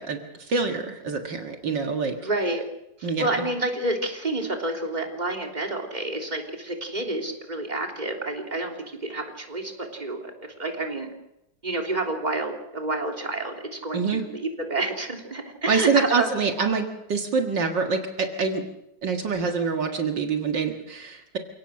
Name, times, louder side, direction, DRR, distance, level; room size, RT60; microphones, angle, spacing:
voice 1, 0.0-2.2 3.0-3.4 13.9-14.2 15.7-18.6 19.0-21.4, right 5 dB, 70° right, 4 dB, 2.4 m, -26 dB
voice 2, 2.2-2.6 3.0-10.2 10.6-11.1 11.6-16.3, right 2 dB, 20° right, 2 dB, 3.5 m, -29 dB
29.0 x 18.5 x 6.5 m, 0.85 s
omnidirectional pair, 2.0 m